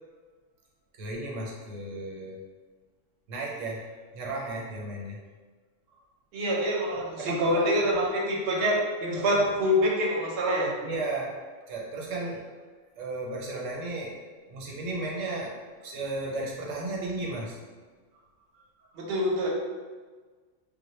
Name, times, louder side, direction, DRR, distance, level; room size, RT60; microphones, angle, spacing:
voice 1, 0.9-2.4 3.3-5.2 6.9-8.1 9.1-9.6 10.8-11.4 11.7-12.5 12.9-14.2 14.5-15.6 15.8-17.6 18.8-18.9, right 2 dB, 90° right, -2 dB, 1.0 m, -34 dB
voice 2, 6.3-10.7 19.0-19.5, equal, 60° right, -2 dB, 0.7 m, -26 dB
2.1 x 2.1 x 3.0 m, 1.4 s
omnidirectional pair, 1.3 m